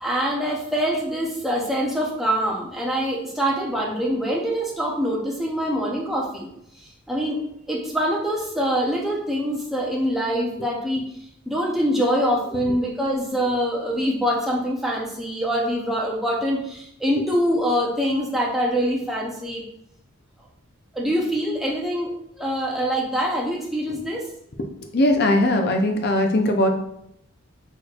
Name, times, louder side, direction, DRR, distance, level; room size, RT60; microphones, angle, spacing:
voice 1, 0.0-6.5 7.1-7.4 7.7-11.0 11.5-19.6 20.9-24.3, equal, ahead, -3 dB, 0.6 m, -24 dB
voice 2, 24.9-26.7, left 1 dB, 45° left, 4 dB, 0.6 m, -19 dB
6.1 x 3.1 x 2.4 m, 0.75 s
head